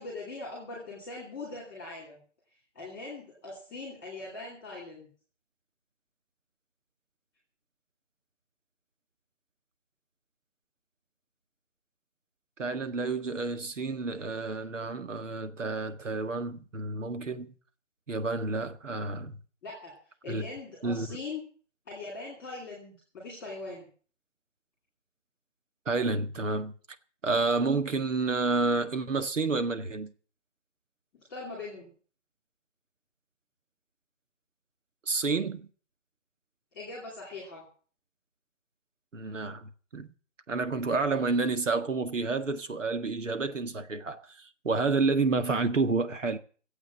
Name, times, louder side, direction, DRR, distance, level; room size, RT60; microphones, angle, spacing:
voice 1, 0.0-2.2 2.7-5.1 19.6-19.9 20.2-21.4 21.9-23.9 31.3-31.9 36.7-37.6, left 3 dB, 5° left, 2.5 m, -41 dB
voice 2, 12.6-17.5 18.1-19.4 20.3-20.4 20.8-21.2 25.9-26.7 27.2-30.1 35.1-35.7 39.1-40.1 40.5-46.4, right 3 dB, 80° right, 1.9 m, -29 dB
16.0 x 8.1 x 8.3 m
hypercardioid pair, 180°, 37 cm